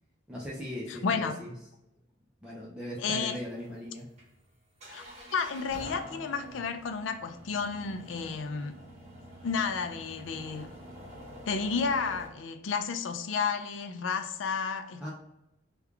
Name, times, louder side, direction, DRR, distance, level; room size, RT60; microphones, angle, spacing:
voice 1, 0.3-1.5 2.4-4.1 15.0-15.1, equal, 5° right, 0.5 m, -38 dB
voice 2, 0.9-1.4 3.0-3.4 4.9-5.0 5.3-8.8 9.4-10.7 11.5-15.1, left 5 dB, 80° left, 0.4 m, -32 dB
sound 1, 3.1-12.3, equal, 35° right, 1.0 m, -47 dB
3.5 x 2.3 x 3.3 m
head